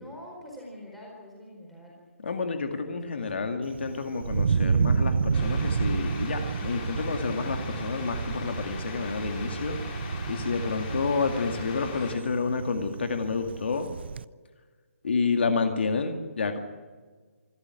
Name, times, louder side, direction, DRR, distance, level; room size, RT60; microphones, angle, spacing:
voice 1, 0.0-2.0 2.6-3.4, equal, ahead, -4 dB, 4.4 m, -46 dB
voice 2, 2.2-9.8 10.3-13.9 15.0-16.6, left 4 dB, 50° left, 6 dB, 2.2 m, -29 dB
Thunder, 3.6-14.2, right 5 dB, 50° right, 0.6 m, -30 dB
sound 1, 5.3-12.1, left 4 dB, 20° left, 3.6 m, -40 dB
26.5 x 12.5 x 9.8 m, 1.4 s
hypercardioid pair, 175°, 8 cm